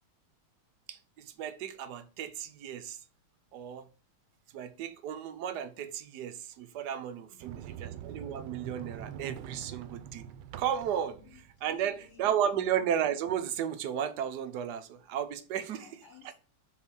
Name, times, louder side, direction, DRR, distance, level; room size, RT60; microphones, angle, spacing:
voice 1, 0.9-3.0 3.5-3.9 4.5-10.2 10.6-11.2 11.6-15.9 16.2-16.3, right 9 dB, 70° right, 1.0 m, -34 dB
voice 2, 7.2-8.0 11.1-12.6 15.7-16.3, left 7 dB, 50° left, 2.9 m, -56 dB
Sliding door, 7.4-12.3, right 9 dB, 85° right, 1.4 m, -44 dB
5.7 x 3.8 x 4.7 m
omnidirectional pair, 2.3 m